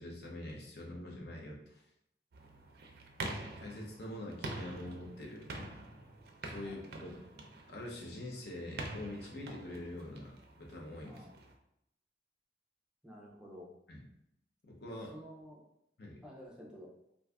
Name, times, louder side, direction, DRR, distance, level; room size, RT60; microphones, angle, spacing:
voice 1, 0.0-1.8 3.6-5.8 6.4-7.1 7.7-10.3 10.6-11.3 13.9-14.0 14.6-15.1 16.0-16.2, left 1 dB, 65° left, -2 dB, 0.7 m, -45 dB
sound 1, 2.3-11.5, right 2 dB, 60° right, 0.4 m, -46 dB
voice 2, 11.1-11.4 13.0-13.7 15.1-15.6 16.2-16.9, equal, 5° right, -2 dB, 0.4 m, -51 dB
2.6 x 2.3 x 3.4 m, 0.78 s
head